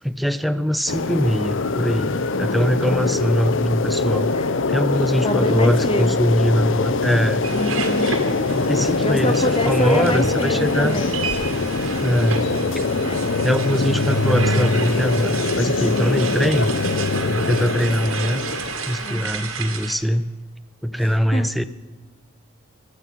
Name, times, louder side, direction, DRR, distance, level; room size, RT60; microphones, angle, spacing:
voice 1, 0.0-4.3 4.7-7.4 8.6-11.0 12.0-12.5 13.4-16.7 17.3-18.5 18.9-20.3 20.8-21.6, equal, ahead, 14 dB, 0.4 m, -22 dB
sound 1, 0.9-19.1, left 3 dB, 65° left, 0.7 m, -23 dB
voice 2, 2.3-3.2 4.3-4.5 5.2-6.2 7.5-8.2 9.0-11.2 13.0-13.4 19.0-19.3 21.0-21.5, left 1 dB, 25° left, 10 dB, 1.0 m, -27 dB
sound 2, 3.7-5.0 6.6-18.9, equal, 20° right, 2.6 m, -40 dB
sound 3, 7.4-19.9, right 5 dB, 80° right, 2.2 m, -32 dB
16.5 x 12.5 x 5.4 m, 1.3 s
head